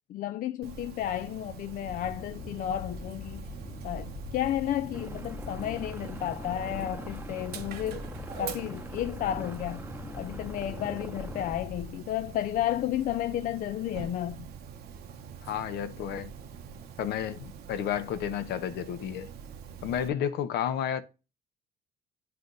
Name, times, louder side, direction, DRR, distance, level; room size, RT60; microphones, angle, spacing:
voice 1, 0.1-3.4 3.8-8.0 8.4-9.8 10.2-14.5, left 12 dB, 55° left, 0.4 m, -32 dB
Dog, 0.6-20.1, right 7 dB, 70° right, 1.0 m, -44 dB
sound 1, 1.8-11.9, left 4 dB, 35° left, 1.3 m, -43 dB
sound 2, 4.9-11.5, right 2 dB, 10° right, 0.8 m, -44 dB
voice 2, 15.4-16.3 17.0-19.3 19.8-21.0, left 9 dB, 75° left, 0.9 m, -31 dB
9.4 x 3.4 x 3.9 m
cardioid pair, 110°, 17 cm